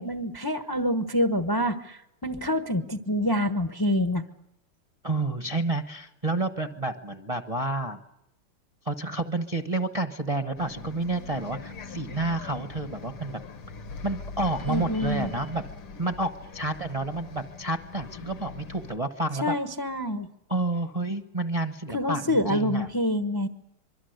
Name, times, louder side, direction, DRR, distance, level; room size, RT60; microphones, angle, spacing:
voice 1, 0.0-4.2 14.7-15.3 19.4-20.3 21.9-23.5, left 1 dB, 35° left, 7 dB, 0.3 m, -26 dB
voice 2, 5.0-8.0 8.8-13.4 14.0-15.6 16.0-19.5 20.5-22.9, right 2 dB, 30° right, 6 dB, 0.7 m, -30 dB
Bus, 10.6-19.0, left 5 dB, 90° left, 2.7 m, -42 dB
25.0 x 23.5 x 8.1 m, 0.83 s
omnidirectional pair, 2.4 m